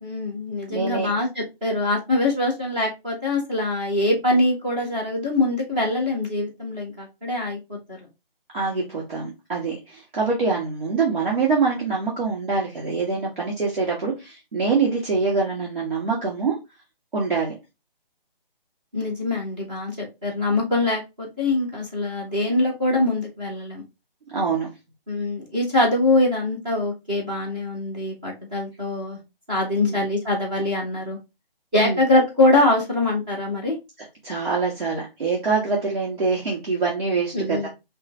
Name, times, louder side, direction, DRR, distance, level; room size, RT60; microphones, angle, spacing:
voice 1, 0.0-8.0 18.9-23.8 25.1-29.2 29.5-31.2 31.7-33.8 37.3-37.7, left 2 dB, 10° right, 0.7 m, -23 dB
voice 2, 0.7-1.1 8.5-16.6 17.1-17.6 24.3-24.7 29.8-29.9 31.8-32.0 34.2-37.7, right 4 dB, 55° right, 1.7 m, -24 dB
5.3 x 2.6 x 3.2 m
figure-of-eight pair, 155°, 29 cm